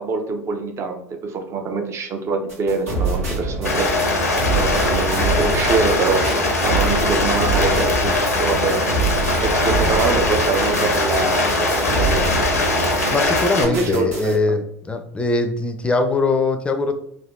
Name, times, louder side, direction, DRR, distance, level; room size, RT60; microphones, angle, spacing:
voice 1, 0.0-4.3 4.6-12.5 13.6-14.4, right 4 dB, 35° right, 4 dB, 0.6 m, -24 dB
sound 1, 2.5-13.5 13.7-14.3, right 2 dB, 75° right, 1.2 m, -26 dB
Rain, 3.6-13.6, left 2 dB, 90° left, 0.5 m, -21 dB
voice 2, 13.1-16.9, left 3 dB, 15° left, 6 dB, 0.5 m, -21 dB
3.3 x 2.3 x 2.5 m, 0.72 s
figure-of-eight pair, 75°, 8 cm